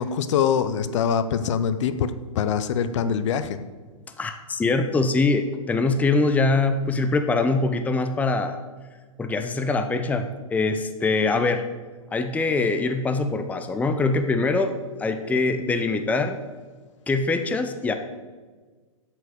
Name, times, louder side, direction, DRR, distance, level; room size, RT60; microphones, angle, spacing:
voice 1, 0.0-3.6, left 7 dB, 60° left, 12 dB, 0.7 m, -24 dB
voice 2, 4.2-8.6 9.2-11.7 12.1-16.4 17.1-17.9, left 3 dB, 10° left, 8 dB, 0.6 m, -23 dB
8.0 x 7.6 x 6.7 m, 1.4 s
hypercardioid pair, 120°, 18 cm